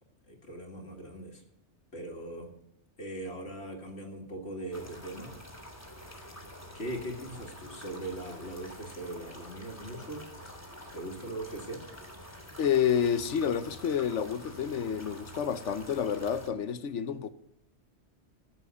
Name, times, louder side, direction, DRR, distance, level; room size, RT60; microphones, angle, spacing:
voice 1, 0.3-1.4 1.9-2.5 3.0-5.4 6.0-6.4 6.7-10.3 10.9-11.8, right 1 dB, 65° left, 2.4 m, -40 dB
sound 1, 4.7-16.5, equal, 15° left, 2.8 m, -47 dB
voice 2, 12.6-17.3, left 8 dB, 85° left, 1.2 m, -29 dB
13.5 x 7.8 x 9.3 m
omnidirectional pair, 1.2 m